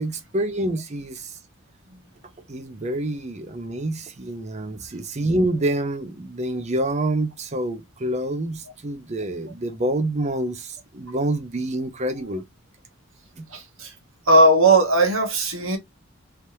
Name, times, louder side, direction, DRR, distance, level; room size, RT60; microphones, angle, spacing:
voice 1, 0.0-1.3 2.5-12.4 13.4-13.5, right 1 dB, 35° right, 0.6 m, -27 dB
voice 2, 13.5-13.9 14.3-15.8, right 2 dB, 75° right, 1.2 m, -17 dB
3.2 x 2.8 x 3.2 m
head